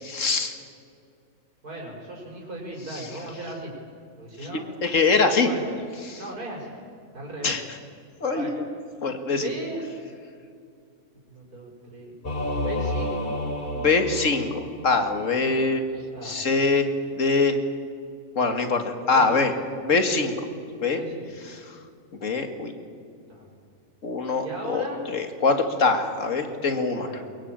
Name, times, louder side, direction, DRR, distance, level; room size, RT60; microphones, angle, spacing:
voice 1, 0.0-0.5 4.8-5.5 6.1-6.2 7.4-7.6 8.2-8.6 9.0-9.5 13.8-15.8 16.2-16.9 17.2-17.6 18.4-19.5 19.8-20.3 20.8-21.0 22.2-22.7 24.0-27.1, left 4 dB, 55° left, 7 dB, 2.4 m, -23 dB
voice 2, 1.6-3.7 4.2-4.7 5.4-5.7 6.2-6.7 7.1-7.5 8.3-8.5 9.3-9.8 11.3-13.3 16.1-16.4 19.1-19.5 20.9-21.3 23.3-23.5 24.4-25.0 27.0-27.3, right 2 dB, 80° right, -2 dB, 5.6 m, -37 dB
Singing / Musical instrument, 12.2-15.1, left 1 dB, 35° left, 3.1 m, -30 dB
23.0 x 22.0 x 9.0 m, 2.4 s
omnidirectional pair, 1.6 m